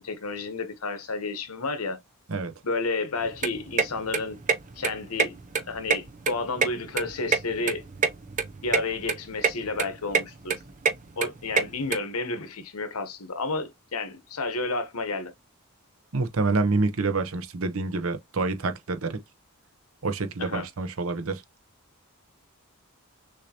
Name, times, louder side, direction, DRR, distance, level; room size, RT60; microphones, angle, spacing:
voice 1, 0.0-2.0 2.6-4.4 4.8-5.4 5.7-7.8 8.6-10.6 11.2-15.3 20.4-20.7, left 3 dB, 80° left, 1.1 m, -31 dB
sound 1, 3.2-12.0, right 5 dB, 35° right, 0.6 m, -27 dB
voice 2, 16.1-19.2 20.0-21.4, right 3 dB, 70° right, 0.8 m, -27 dB
6.4 x 2.7 x 2.9 m
head